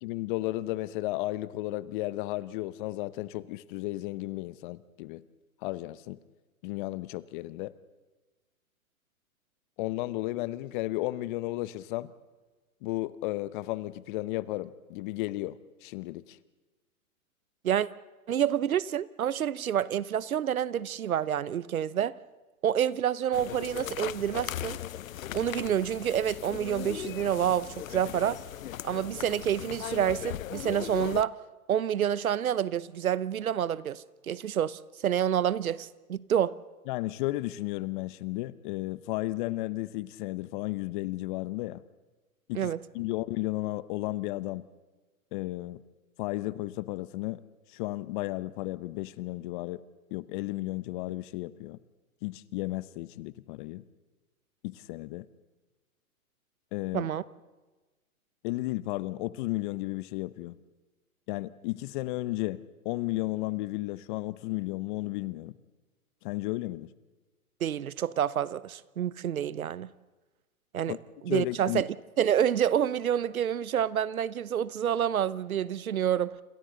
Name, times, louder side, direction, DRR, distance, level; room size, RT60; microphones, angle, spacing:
voice 1, 0.0-5.2 5.6-6.2 6.6-7.7 9.8-12.1 12.8-16.4 36.9-41.8 42.5-44.6 45.3-45.8 46.2-47.4 47.7-49.8 50.1-51.8 52.2-53.8 54.6-55.3 56.7-57.1 58.4-60.6 61.3-65.6 66.2-66.9 70.9-71.0 71.3-71.8, left 18 dB, 35° left, 0.8 m, -33 dB
voice 2, 18.3-22.2 22.6-24.8 25.3-28.4 28.8-31.3 31.7-36.5 42.5-42.8 56.9-57.2 67.6-69.9 70.7-71.0 71.2-71.9 72.2-76.4, right 9 dB, 75° right, 0.9 m, -28 dB
sound 1, 23.3-31.2, left 12 dB, 70° left, 0.7 m, -38 dB
28.5 x 27.5 x 3.9 m
hypercardioid pair, 115°, 42 cm